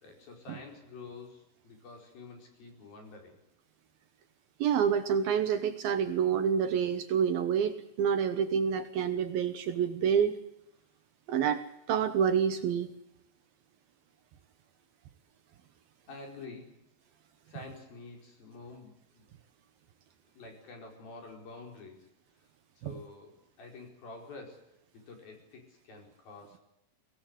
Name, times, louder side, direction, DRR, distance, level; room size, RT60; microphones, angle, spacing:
voice 1, 0.0-3.4 16.1-16.8 17.5-19.3 20.3-22.1 22.4-22.5 22.8-24.8 25.1-26.6, left 3 dB, 55° left, 3 dB, 6.6 m, -48 dB
voice 2, 4.6-10.4 11.3-12.9 22.8-22.9, right 7 dB, 70° right, 9 dB, 2.5 m, -28 dB
24.0 x 18.0 x 8.0 m, 0.84 s
omnidirectional pair, 5.0 m